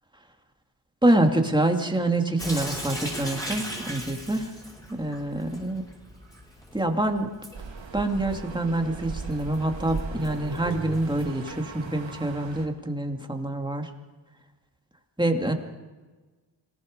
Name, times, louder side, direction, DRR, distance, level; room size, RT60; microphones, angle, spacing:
voice 1, 1.0-4.5 4.9-5.8 6.7-7.3 7.9-13.9 15.2-15.5, right 1 dB, 10° right, 3 dB, 2.4 m, -26 dB
Sink (filling or washing) / Drip, 2.4-11.3, equal, 10° left, 7.0 m, -39 dB
sound 1, 7.5-12.7, right 5 dB, 70° right, 2.4 m, -38 dB
26.5 x 19.0 x 5.3 m, 1.3 s
wide cardioid pair, 85°, 46 cm